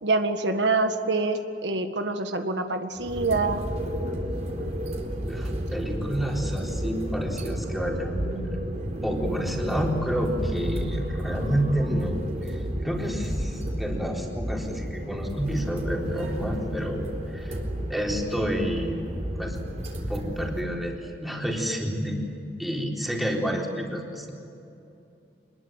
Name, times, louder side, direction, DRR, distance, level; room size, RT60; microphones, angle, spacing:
voice 1, 0.0-3.6, right 3 dB, 85° right, 6 dB, 1.8 m, -26 dB
sound 1, 3.0-20.6, equal, 40° right, 3.9 m, -32 dB
voice 2, 5.3-8.6 9.0-12.2 12.4-17.6 17.9-19.1 19.4-19.7 20.1-22.2 22.6-24.3, equal, ahead, -1 dB, 3.8 m, -29 dB
26.0 x 21.5 x 9.1 m, 2.7 s
head